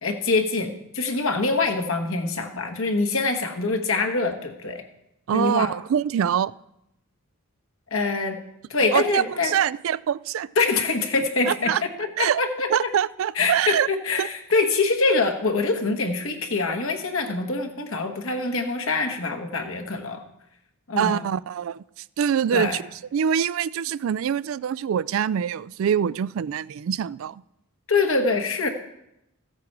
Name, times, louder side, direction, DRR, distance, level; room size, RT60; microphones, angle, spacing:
voice 1, 0.0-4.8 5.3-5.7 7.9-8.4 8.7-9.5 10.6-11.7 12.0-12.9 13.3-20.2 20.9-21.2 22.5-22.8 27.9-28.7, left 3 dB, 70° left, 4 dB, 1.4 m, -24 dB
voice 2, 5.3-6.5 8.9-10.5 11.5-11.8 12.2-12.4 12.7-13.9 14.2-14.3 21.0-22.8 23.1-27.4, right 8 dB, 65° right, 20 dB, 0.3 m, -24 dB
14.5 x 8.5 x 4.7 m, 0.83 s
head